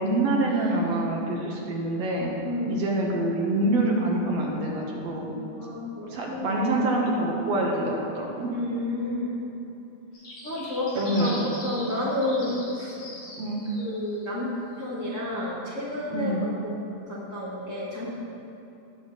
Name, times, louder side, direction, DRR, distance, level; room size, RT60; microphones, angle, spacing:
voice 1, 0.0-2.3 2.7-5.4 6.1-8.5 11.0-11.4 13.4-13.6 16.1-16.4, right 1 dB, 60° right, -2 dB, 2.0 m, -26 dB
voice 2, 2.4-3.1 5.6-7.0 8.5-9.3 10.4-13.0 13.8-14.5 14.8-16.7 17.1-18.1, left 1 dB, 60° left, -9 dB, 0.8 m, -31 dB
sound 1, 10.1-14.2, left 1 dB, 45° left, 3.1 m, -41 dB
19.0 x 6.4 x 3.2 m, 2.9 s
omnidirectional pair, 4.1 m